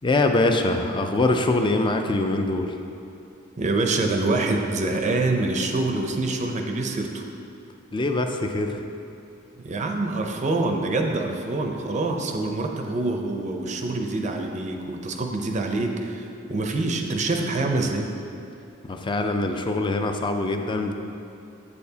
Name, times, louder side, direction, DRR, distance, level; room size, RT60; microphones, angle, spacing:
voice 1, 0.0-2.7 7.9-8.8 18.9-20.9, left 2 dB, 25° left, 5 dB, 0.4 m, -23 dB
voice 2, 3.6-7.2 9.6-18.1, right 2 dB, 35° right, 3 dB, 0.5 m, -25 dB
8.4 x 6.7 x 2.8 m, 2.7 s
head